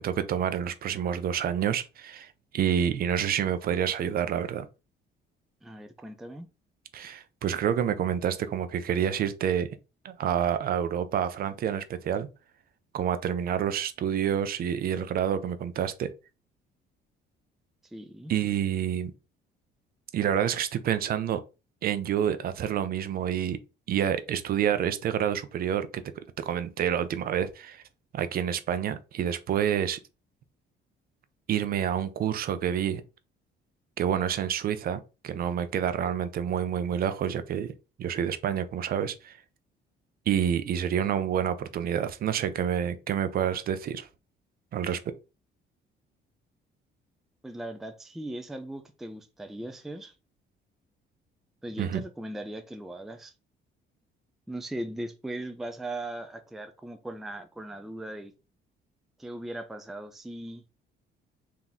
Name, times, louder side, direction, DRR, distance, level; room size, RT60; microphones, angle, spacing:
voice 1, 0.0-4.7 6.9-9.7 10.0-12.3 12.9-16.1 18.3-19.1 20.1-21.4 21.8-23.6 23.9-26.0 26.4-27.8 28.1-30.0 31.5-33.0 34.0-37.7 38.0-39.4 40.3-44.1 44.7-45.0 51.8-52.0, right 9 dB, 50° right, 0.5 m, -28 dB
voice 2, 5.6-6.5 17.9-18.3 47.4-50.1 51.6-53.3 54.5-58.3 59.2-60.6, right 1 dB, ahead, 0.4 m, -38 dB
3.6 x 2.9 x 3.9 m
cardioid pair, 150°, 19 cm